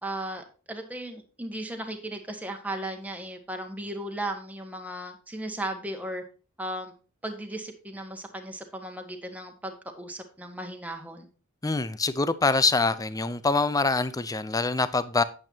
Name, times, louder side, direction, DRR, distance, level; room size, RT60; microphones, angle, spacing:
voice 1, 0.0-6.2 6.6-6.9 7.2-11.3, right 1 dB, 5° right, 1.4 m, -36 dB
voice 2, 11.6-15.2, left 3 dB, 15° left, 0.6 m, -25 dB
9.0 x 8.7 x 2.8 m
head